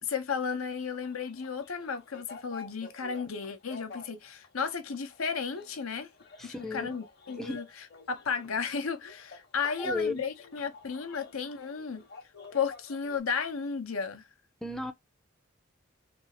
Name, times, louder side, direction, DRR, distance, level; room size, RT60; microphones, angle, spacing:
voice 1, 0.0-6.1 6.4-7.7 8.1-12.0 12.5-14.3, left 6 dB, 90° left, 0.8 m, -34 dB
sound 1, 0.9-13.2, left 3 dB, 50° left, 1.0 m, -50 dB
voice 2, 6.4-6.9 7.4-7.6 9.8-10.2 14.6-14.9, left 3 dB, ahead, 0.5 m, -34 dB
3.4 x 2.4 x 2.8 m
head